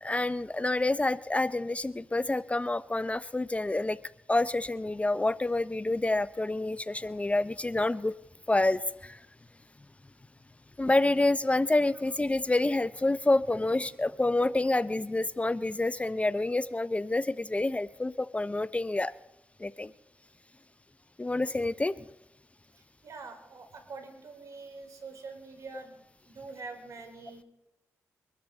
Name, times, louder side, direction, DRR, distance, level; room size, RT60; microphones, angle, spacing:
voice 1, 0.0-4.0 4.3-8.1 8.5-9.2 10.8-19.1 19.6-19.9 21.2-22.0, left 2 dB, 20° left, 16 dB, 0.6 m, -28 dB
voice 2, 23.0-27.4, right 4 dB, 65° right, 4 dB, 4.4 m, -45 dB
23.5 x 13.0 x 3.9 m, 0.93 s
supercardioid pair, 50°, 6 cm